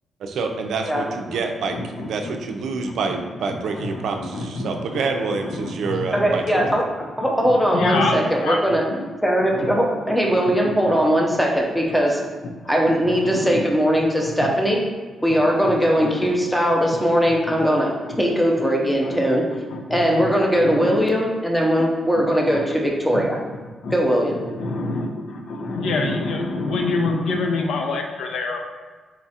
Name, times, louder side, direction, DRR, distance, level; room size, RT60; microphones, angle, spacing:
voice 1, 0.2-6.8, right 4 dB, 75° right, 4 dB, 0.4 m, -27 dB
voice 2, 1.7-2.3 3.0-3.2 3.7-4.0 4.3-6.7 7.2-8.6 8.9-9.1 9.5-9.8 10.5-10.9 13.0-13.6 14.2-14.5 15.3-16.3 17.5-17.7 18.1-18.2 18.6-18.7 19.0-19.3 19.7-20.3 20.6-21.0 21.8-21.9 22.1-22.6 23.1-23.2 23.8-23.9 24.4-28.6, left 3 dB, 80° left, 3 dB, 0.5 m, -28 dB
voice 3, 6.1-6.8 7.2-8.8 9.2-12.2 12.7-14.8 15.2-19.4 19.9-23.4 23.9-24.4, equal, 5° left, -1 dB, 0.6 m, -20 dB
4.2 x 2.4 x 4.1 m, 1.4 s
wide cardioid pair, 165°, 0 cm